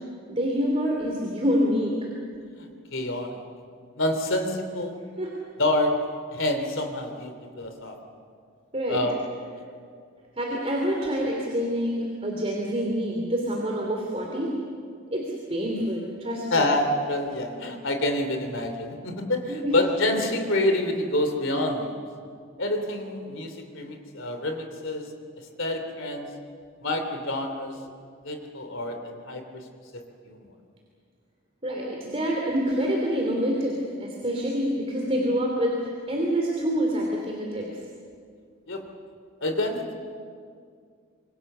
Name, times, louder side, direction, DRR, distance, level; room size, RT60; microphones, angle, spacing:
voice 1, 0.3-2.0 5.2-5.3 8.7-9.0 10.4-14.5 15.1-16.6 19.5-19.7 31.6-37.7, equal, 30° right, -2 dB, 3.1 m, -27 dB
voice 2, 2.6-3.4 4.0-5.0 5.6-6.0 6.3-7.9 8.9-9.2 16.5-22.0 22.6-25.1 25.6-26.3 26.8-27.8 28.2-29.4 29.9-30.4 38.7-38.8 39.4-39.9, left 1 dB, 65° left, 6 dB, 3.2 m, -27 dB
26.5 x 24.5 x 6.9 m, 2.2 s
head